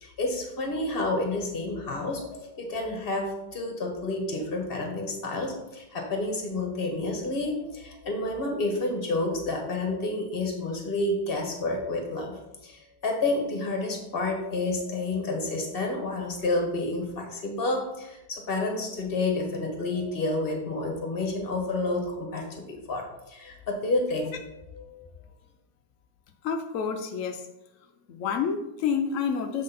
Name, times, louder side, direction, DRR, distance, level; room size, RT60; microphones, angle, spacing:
voice 1, 0.0-24.3 24.7-25.0, left 2 dB, 35° left, 2 dB, 1.3 m, -30 dB
voice 2, 26.4-27.5 28.1-29.6, left 6 dB, 85° left, 5 dB, 0.7 m, -29 dB
7.4 x 4.2 x 4.1 m, 0.91 s
omnidirectional pair, 2.0 m